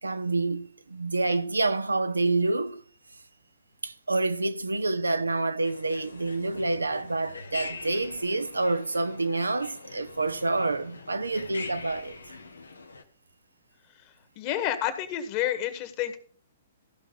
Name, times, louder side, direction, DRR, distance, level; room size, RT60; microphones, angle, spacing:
voice 1, 0.0-2.8 3.8-12.2, right 2 dB, 85° right, 0.7 m, -28 dB
sound 1, 5.6-13.0, left 4 dB, 80° left, 1.2 m, -43 dB
voice 2, 14.4-16.2, left 11 dB, 40° left, 1.7 m, -29 dB
14.5 x 5.9 x 5.4 m
figure-of-eight pair, 115°, 0 cm